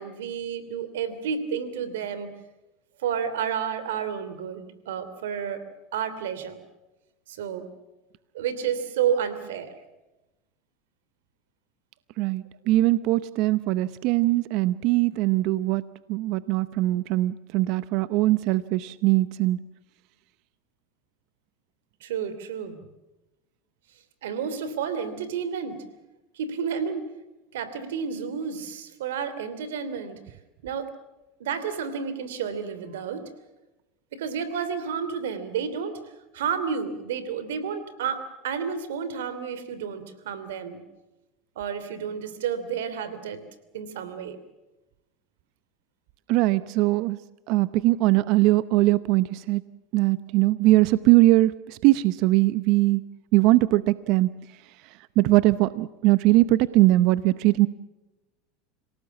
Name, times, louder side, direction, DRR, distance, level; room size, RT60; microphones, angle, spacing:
voice 1, 0.0-2.3 3.0-5.6 5.9-6.6 7.3-7.6 8.3-9.7 22.0-22.8 24.2-25.8 26.3-27.1 27.5-30.2 30.6-30.9 31.4-33.3 34.1-40.8 41.6-43.4 43.7-44.4, right 7 dB, 90° right, 12 dB, 2.9 m, -31 dB
voice 2, 12.2-15.8 16.1-19.6 46.3-47.2 47.5-49.6 49.9-53.0 53.3-54.4 55.2-57.7, right 18 dB, 60° right, 16 dB, 0.7 m, -21 dB
27.0 x 18.0 x 7.2 m, 1.0 s
supercardioid pair, 120°, 0 cm